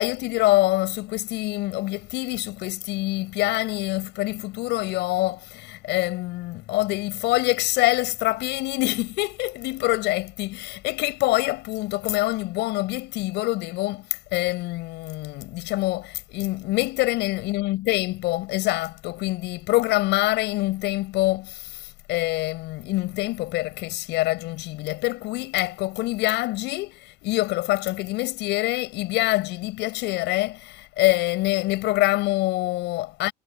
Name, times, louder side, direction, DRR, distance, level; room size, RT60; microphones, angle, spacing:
voice 1, 0.0-33.3, left 19 dB, 75° left, 7.5 m, -25 dB
supercardioid pair, 95°, 18 cm